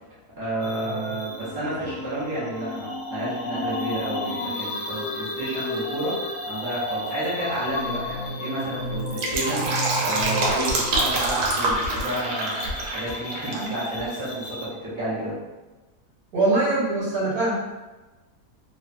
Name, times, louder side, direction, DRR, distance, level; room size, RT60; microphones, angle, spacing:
voice 1, 0.4-15.4, right 1 dB, 35° right, -10 dB, 0.4 m, -30 dB
sound 1, 0.6-14.7, left 1 dB, 80° left, 1.2 m, -33 dB
Fill (with liquid), 8.9-13.7 14.0-14.1, right 2 dB, 80° right, 1.2 m, -26 dB
voice 2, 16.3-17.5, right 2 dB, 65° right, -7 dB, 1.4 m, -22 dB
3.0 x 2.1 x 2.4 m, 1.2 s
omnidirectional pair, 1.8 m